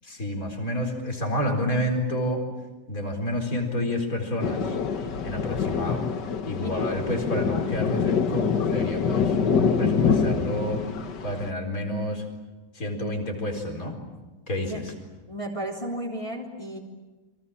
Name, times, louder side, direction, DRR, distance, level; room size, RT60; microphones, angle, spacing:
voice 1, 0.0-2.4 2.9-4.8 5.2-6.0 6.4-9.4 9.8-10.8 11.2-12.2 12.7-14.0 14.5-14.9, left 1 dB, 55° left, 4 dB, 4.8 m, -29 dB
Thunder, 4.4-11.5, left 6 dB, 85° left, 2.1 m, -25 dB
voice 2, 15.3-16.8, right 1 dB, 20° left, -2 dB, 3.2 m, -33 dB
30.0 x 24.0 x 7.3 m, 1.2 s
omnidirectional pair, 1.8 m